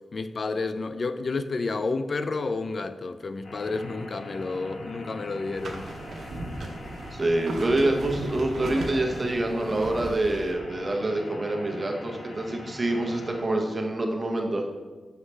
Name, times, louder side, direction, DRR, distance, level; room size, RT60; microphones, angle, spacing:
voice 1, 0.1-5.9, left 3 dB, 50° left, 0.3 m, -30 dB
sound 1, 3.4-13.4, left 1 dB, 80° left, 1.0 m, -43 dB
sound 2, 5.5-10.5, right 1 dB, 80° right, 0.7 m, -37 dB
voice 2, 7.1-14.6, right 1 dB, 30° right, 0.8 m, -26 dB
6.3 x 4.8 x 3.3 m
wide cardioid pair, 95°, 0 cm